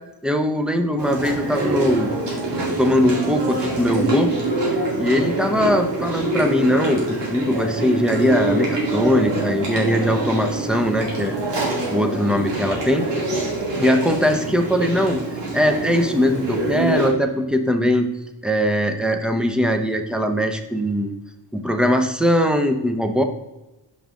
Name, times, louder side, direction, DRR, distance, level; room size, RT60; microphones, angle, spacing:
voice 1, 0.2-2.1 2.8-4.3 5.0-11.3 11.9-13.1 13.8-15.2 15.5-18.1 18.4-21.1 21.5-23.2, equal, ahead, 6 dB, 0.6 m, -20 dB
Chewing mastication, 1.0-17.1, right 2 dB, 70° right, 2.3 m, -25 dB
6.2 x 5.4 x 3.7 m, 1.0 s
cardioid pair, 90°, 43 cm